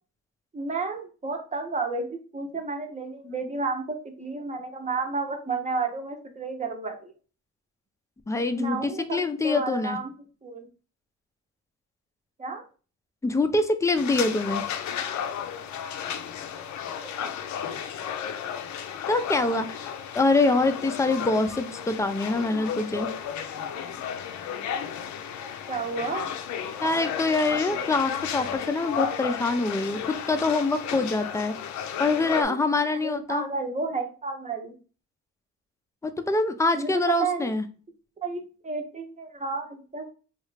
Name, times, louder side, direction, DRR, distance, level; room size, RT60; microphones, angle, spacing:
voice 1, 0.5-2.1 2.3-7.1 8.5-9.2 9.4-10.1 10.4-10.6 12.4-12.6 17.0-17.5 25.7-26.3 32.4-32.6 33.0-34.7 36.7-37.5 38.2-40.1, right 4 dB, 25° right, 4 dB, 0.8 m, -31 dB
voice 2, 8.3-10.0 13.2-14.6 19.1-19.9 20.1-23.1 26.8-31.6 32.0-33.5 36.0-37.6, left 3 dB, 10° left, 8 dB, 0.4 m, -25 dB
sound 1, 13.9-32.4, left 8 dB, 70° left, 0.5 m, -33 dB
3.1 x 2.4 x 3.1 m, 0.36 s
cardioid pair, 90°, 30 cm